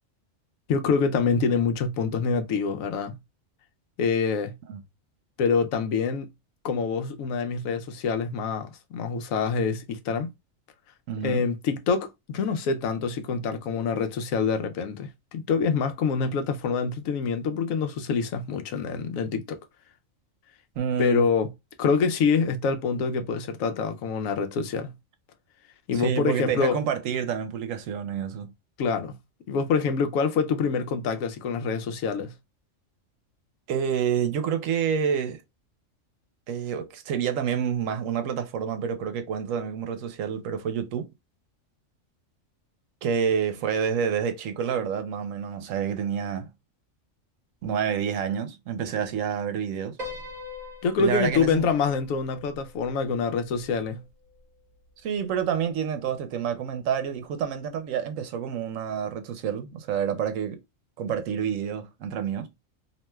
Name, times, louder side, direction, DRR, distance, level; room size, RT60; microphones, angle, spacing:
voice 1, 0.7-3.1 4.0-4.6 5.4-6.3 6.6-10.3 11.2-19.6 21.0-21.5 21.8-24.9 25.9-26.8 28.8-29.2 29.5-32.3 50.8-54.0, left 5 dB, 90° left, 1.0 m, -26 dB
voice 2, 11.1-11.4 20.8-21.3 25.9-28.5 33.7-35.4 36.5-41.1 43.0-46.5 47.6-50.0 51.0-51.7 55.0-60.6 61.0-62.5, right 7 dB, 85° right, 1.0 m, -28 dB
Piano, 50.0-54.4, left 3 dB, 40° right, 0.8 m, -42 dB
2.8 x 2.2 x 3.0 m
omnidirectional pair, 1.4 m